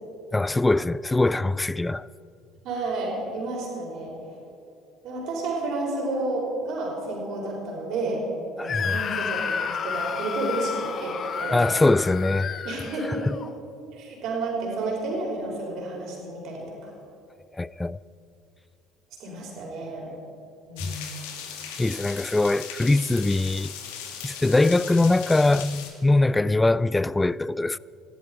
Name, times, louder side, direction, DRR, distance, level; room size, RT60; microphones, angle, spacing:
voice 1, 0.3-2.1 8.6-9.0 11.5-12.6 13.3-13.4 17.6-18.0 20.8-20.9 21.8-23.7 24.2-27.8, left 2 dB, 15° left, 0.3 m, -22 dB
voice 2, 2.6-4.1 5.0-8.2 8.6-11.7 12.6-13.2 13.9-16.9 19.2-20.1 20.6-21.0, right 2 dB, 55° right, 4.8 m, -31 dB
Screaming, 8.7-13.5, left 6 dB, 40° left, 1.0 m, -31 dB
sound 1, 20.8-25.9, left 8 dB, 65° left, 1.9 m, -38 dB
18.5 x 15.0 x 5.0 m
figure-of-eight pair, 60°, 0 cm